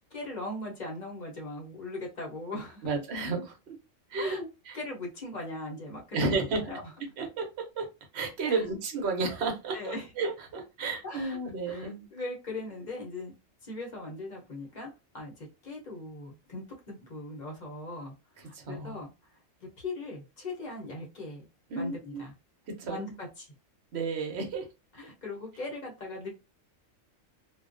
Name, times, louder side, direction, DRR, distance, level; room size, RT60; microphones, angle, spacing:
voice 1, 0.1-2.9 4.2-4.4 4.7-6.2 6.6-6.9 8.5-8.7 9.7-10.1 11.0-11.4 11.7-13.3 13.6-19.1 19.6-21.5 21.7-22.3 22.9-23.5 24.9-26.3, left 2 dB, 40° left, -1 dB, 0.7 m, -39 dB
voice 2, 2.8-3.6 4.1-4.4 4.7-4.8 6.1-6.6 7.2-7.5 7.8-7.9 8.1-12.1 18.5-19.0 21.7-22.2 22.7-23.0 23.9-24.7, right 3 dB, 60° right, 2 dB, 0.9 m, -32 dB
2.3 x 2.2 x 2.5 m, 0.27 s
omnidirectional pair, 1.3 m